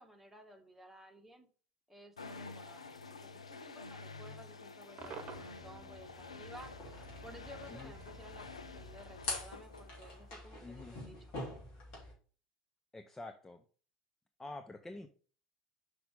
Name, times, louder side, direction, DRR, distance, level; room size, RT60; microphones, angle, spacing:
voice 1, 0.0-1.5 1.9-6.7 7.2-11.2, equal, 5° right, 2 dB, 1.6 m, -55 dB
sound 1, 2.2-10.4, left 4 dB, 80° left, 0.5 m, -50 dB
Cheering / Crowd / Fireworks, 5.0-10.3, right 4 dB, 35° right, 1.2 m, -53 dB
sound 2, 6.5-12.1, left 2 dB, 50° left, 3.2 m, -46 dB
voice 2, 10.6-11.0 12.9-13.6 14.4-15.1, left 2 dB, 10° left, 8 dB, 0.6 m, -47 dB
5.9 x 5.0 x 5.4 m, 0.41 s
figure-of-eight pair, 70°, 3 cm